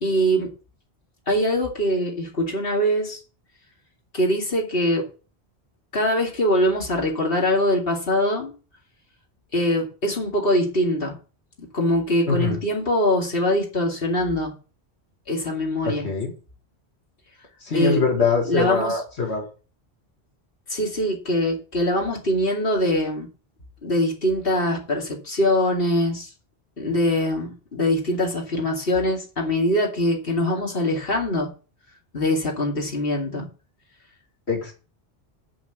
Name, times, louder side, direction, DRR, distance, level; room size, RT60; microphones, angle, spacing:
voice 1, 0.0-0.5 1.3-3.2 4.1-5.1 5.9-8.6 9.5-11.2 11.6-14.5 15.3-16.1 17.7-18.0 18.5-18.9 20.7-23.3 23.8-26.3 26.8-31.5 32.1-33.5, left 1 dB, 60° left, 0 dB, 2.7 m, -23 dB
voice 2, 15.8-16.3 17.6-19.5 34.5-34.7, left 4 dB, 90° left, 1 dB, 2.4 m, -23 dB
9.9 x 5.2 x 8.0 m, 0.35 s
omnidirectional pair, 1.1 m